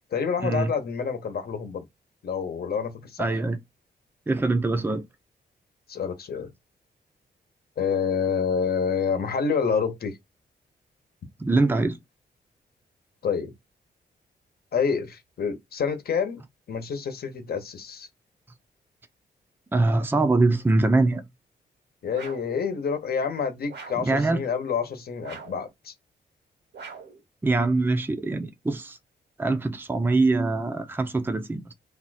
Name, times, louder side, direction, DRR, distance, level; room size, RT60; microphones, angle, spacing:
voice 1, 0.0-1.8 2.2-3.2 5.9-6.5 7.8-10.2 13.2-13.5 14.7-16.4 16.7-18.1 22.0-25.9, left 6 dB, 60° left, 1.0 m, -28 dB
voice 2, 3.2-3.6 4.3-5.0 11.4-12.0 19.7-21.2 24.0-24.4 27.4-29.0 29.4-31.7, right 3 dB, 10° right, 0.5 m, -23 dB
sound 1, 22.1-22.6 23.7-24.2 25.2-25.7 26.7-27.2, right 4 dB, 75° right, 1.2 m, -42 dB
2.7 x 2.3 x 4.0 m
cardioid pair, 105°, 18 cm